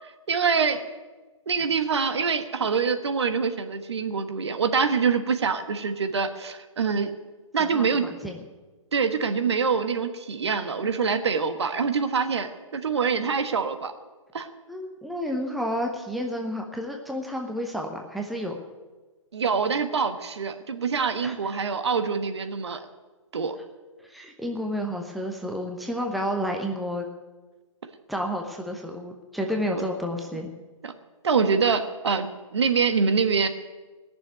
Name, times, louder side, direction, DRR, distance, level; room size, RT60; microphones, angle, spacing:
voice 1, 0.3-0.8 1.5-7.1 7.5-8.1 8.9-13.9 14.3-14.5 19.3-22.8 23.3-23.6 30.8-30.9 31.2-33.5, right 5 dB, 55° right, 8 dB, 1.3 m, -25 dB
voice 2, 7.6-8.4 14.7-18.6 21.2-21.3 24.1-27.1 28.1-30.5, equal, ahead, 2 dB, 0.8 m, -31 dB
18.0 x 7.0 x 9.2 m, 1.3 s
figure-of-eight pair, 130°, 17 cm